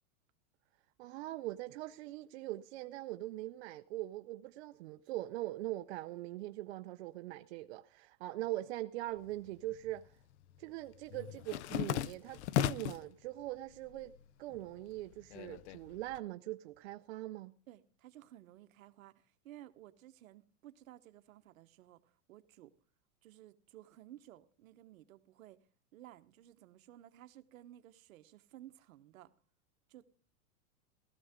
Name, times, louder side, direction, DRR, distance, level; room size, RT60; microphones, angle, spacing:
voice 1, 1.0-10.1 10.6-14.1 14.4-17.5, right 16 dB, 50° right, 0.6 m, -42 dB
sound 1, 9.2-10.0 10.3-13.1 13.6-14.2 14.5-16.2, left 12 dB, 55° left, 0.6 m, -37 dB
voice 2, 17.7-22.7 23.2-25.6 25.9-29.3 29.9-30.1, right 13 dB, 65° right, 1.2 m, -56 dB
16.5 x 14.0 x 3.7 m
supercardioid pair, 160°, 43 cm